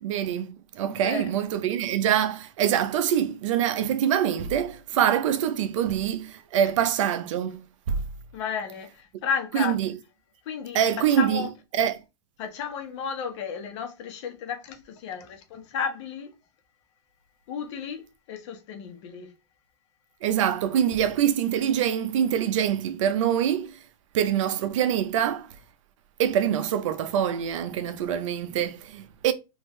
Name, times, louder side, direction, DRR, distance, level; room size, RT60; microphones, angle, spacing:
voice 1, 0.0-8.0 9.5-9.9 10.7-11.5 11.8-11.9 20.2-23.8 24.1-25.5 26.2-29.3, right 9 dB, 65° right, 0.6 m, -25 dB
voice 2, 0.9-1.3 8.3-9.8 10.4-11.5 12.4-16.3 17.5-19.3, left 6 dB, 55° left, 1.1 m, -33 dB
3.6 x 2.6 x 3.1 m
supercardioid pair, 145°, 18 cm